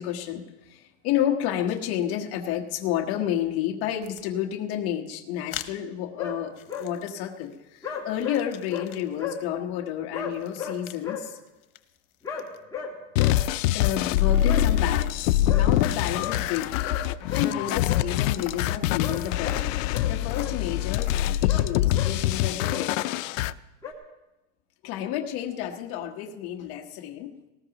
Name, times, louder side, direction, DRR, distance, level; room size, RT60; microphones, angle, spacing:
voice 1, 0.0-11.4 13.7-16.9 17.3-19.8 20.1-23.2 24.8-27.5, left 11 dB, 35° left, 1 dB, 1.1 m, -31 dB
sound 1, 4.0-4.2 5.5-5.7 6.6-7.6 7.9-9.2 10.3-11.0 11.5-12.6 13.9-15.3 16.2-17.3 18.1-18.8 19.5-19.8 20.2-20.5 20.9-21.2, left 13 dB, 85° left, 1.1 m, -41 dB
sound 2, 6.2-6.4 6.7-6.9 7.8-8.4 8.7-8.9 9.2-9.4 10.1-11.2 12.2-12.4 12.7-12.9 13.2-13.4 14.4-14.6 15.5-15.6 16.2-16.4 16.8-17.0 17.3-17.5 17.9-18.1 19.0-19.6 19.9-20.5 21.5-21.7 21.9-22.1 22.7-22.9 23.8-23.9, left 7 dB, 10° left, 1.5 m, -34 dB
sound 3, 13.2-23.5, left 13 dB, 65° left, 0.5 m, -24 dB
19.0 x 19.0 x 2.9 m, 1.0 s
supercardioid pair, 170°, 42 cm